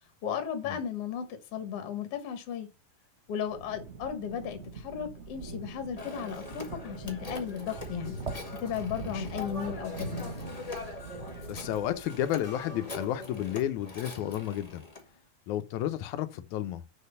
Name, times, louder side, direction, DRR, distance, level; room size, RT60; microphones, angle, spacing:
voice 1, 0.2-2.7 3.3-8.1 8.6-10.3, left 8 dB, 55° left, 2.1 m, -35 dB
sound 1, 3.4-12.6, right 3 dB, 75° right, 0.6 m, -42 dB
Telephone, 6.0-15.0, left 3 dB, 25° left, 0.9 m, -42 dB
voice 2, 11.5-14.8 15.5-16.8, left 11 dB, 80° left, 2.2 m, -32 dB
6.6 x 6.1 x 5.5 m
omnidirectional pair, 3.4 m